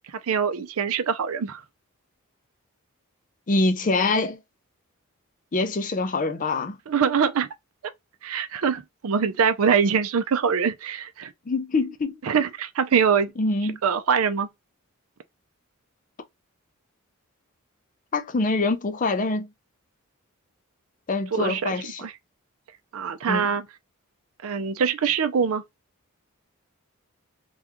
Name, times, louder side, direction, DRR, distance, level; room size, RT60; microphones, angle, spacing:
voice 1, 0.3-1.6 6.9-7.5 8.2-11.3 12.2-13.3 13.8-14.5 21.3-22.1 22.9-23.7 24.4-25.6, right 6 dB, 75° right, 0.4 m, -23 dB
voice 2, 3.5-4.4 5.5-6.8 11.5-12.1 13.4-13.8 18.1-19.5 21.1-22.1 23.3-23.5, left 3 dB, 35° left, 0.5 m, -24 dB
2.9 x 2.3 x 3.5 m
head